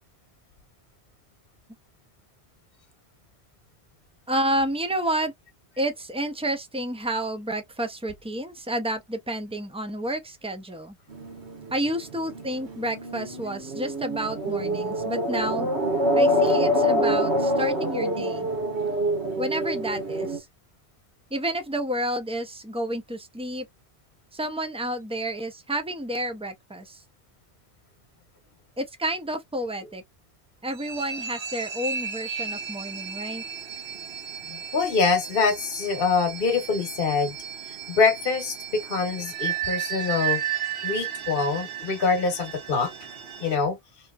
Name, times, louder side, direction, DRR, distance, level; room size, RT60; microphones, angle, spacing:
voice 1, 4.3-5.3 5.8-10.9 11.7-15.7 16.2-18.5 19.4-20.5 21.3-23.7 24.3-27.0 28.8-30.0 30.6-33.4, right 1 dB, 10° right, 0.3 m, -30 dB
sound 1, 11.1-20.4, equal, 90° right, 1.5 m, -26 dB
sound 2, 30.7-43.6, right 8 dB, 65° right, 0.9 m, -34 dB
voice 2, 34.7-37.3 37.9-40.4 40.8-42.9 43.4-43.8, left 4 dB, 60° left, 1.2 m, -24 dB
3.0 x 2.7 x 2.3 m
omnidirectional pair, 1.1 m